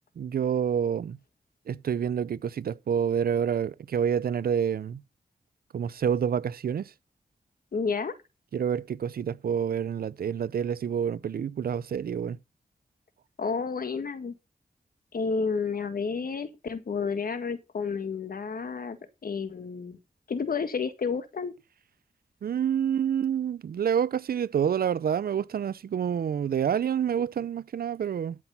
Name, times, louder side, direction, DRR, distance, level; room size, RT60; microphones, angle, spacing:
voice 1, 0.2-1.2 1.7-5.0 5.7-6.9 8.5-12.4 22.4-28.4, right 8 dB, 85° right, 0.5 m, -28 dB
voice 2, 7.7-8.1 13.4-14.3 15.1-20.0 20.3-21.5, left 5 dB, 75° left, 1.7 m, -31 dB
12.0 x 6.1 x 5.6 m
cardioid pair, 50°, 15 cm